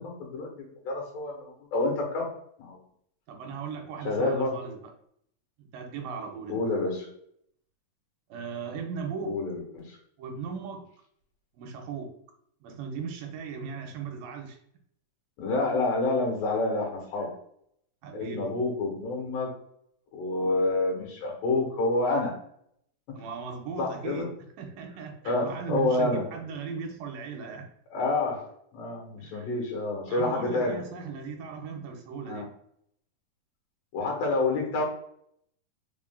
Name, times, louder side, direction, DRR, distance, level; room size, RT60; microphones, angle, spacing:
voice 1, 0.0-2.3 2.6-2.8 4.0-4.6 6.5-7.1 9.3-10.0 15.4-17.3 18.1-19.5 20.1-22.3 23.1-23.2 23.8-24.3 25.2-26.3 27.9-28.5 28.7-30.8 32.3-32.5 33.9-34.8, left 2 dB, 80° left, -1 dB, 3.1 m, -28 dB
voice 2, 3.3-4.9 5.6-6.6 8.3-9.4 10.2-10.9 11.5-12.1 12.6-14.6 18.0-18.4 23.2-27.7 29.2-29.5 30.1-32.5, right 6 dB, 85° right, 2 dB, 2.5 m, -37 dB
6.3 x 3.7 x 2.2 m, 0.69 s
omnidirectional pair, 4.0 m